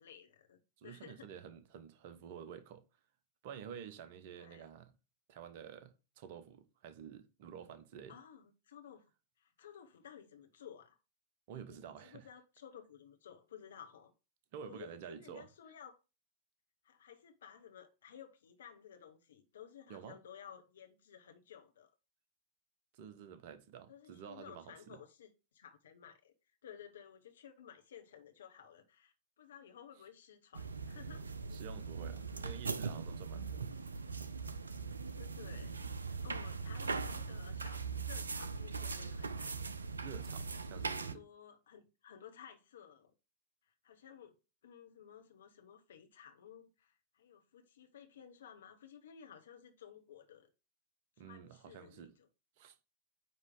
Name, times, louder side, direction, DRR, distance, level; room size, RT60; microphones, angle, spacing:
voice 1, 0.0-1.3 4.3-4.6 8.1-9.0 9.4-11.0 11.5-14.1 14.5-16.0 16.8-21.9 23.9-26.3 26.6-31.3 32.3-32.5 35.2-39.6 40.9-43.1 43.8-44.3 44.6-50.5 51.2-52.1, left 8 dB, 65° left, 0.9 m, -55 dB
voice 2, 0.8-2.8 3.4-4.9 5.3-8.2 11.5-12.3 14.5-15.5 19.9-20.2 22.9-25.0 31.5-33.7 40.0-41.2 51.2-52.1 52.6-52.8, right 8 dB, 50° right, 0.8 m, -50 dB
sound 1, 30.5-41.1, right 4 dB, 75° right, 0.4 m, -40 dB
9.2 x 3.1 x 3.7 m
figure-of-eight pair, 90°, 0 cm